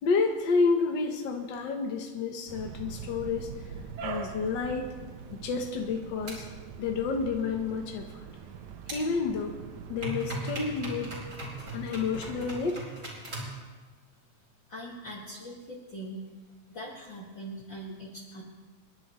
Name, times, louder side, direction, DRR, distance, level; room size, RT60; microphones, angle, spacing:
voice 1, 0.0-3.5 4.0-4.9 5.3-6.5 6.8-8.1 8.9-9.6 9.9-11.2 11.7-12.9, left 4 dB, 60° left, 2 dB, 1.2 m, -29 dB
sound 1, 2.5-12.6, right 6 dB, 80° right, 2.3 m, -43 dB
sound 2, 6.3-6.4 8.9-9.0 10.0-13.6, right 1 dB, 30° right, 4.6 m, -38 dB
voice 2, 14.7-16.2 16.7-18.4, right 1 dB, 45° left, -5 dB, 2.2 m, -41 dB
29.0 x 11.0 x 3.1 m, 1.4 s
omnidirectional pair, 3.4 m